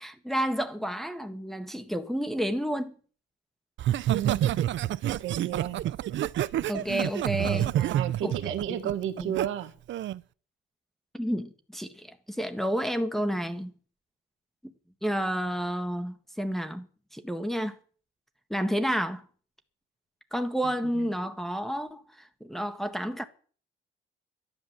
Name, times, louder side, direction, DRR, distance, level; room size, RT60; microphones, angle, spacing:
voice 1, 0.0-2.9 6.7-7.7 8.2-8.3 8.7-8.8 9.2-9.3 11.1-13.7 15.0-17.7 18.5-19.2 20.3-23.2, equal, ahead, 1.7 m, -30 dB
Laughter, 3.8-9.5 9.9-10.2, right 12 dB, 70° right, 0.7 m, -28 dB
voice 2, 3.9-4.6 5.0-5.8 7.7-9.7 20.6-21.1, right 11 dB, 90° right, 1.8 m, -33 dB
11.5 x 11.5 x 7.5 m
cardioid pair, 90°, 20 cm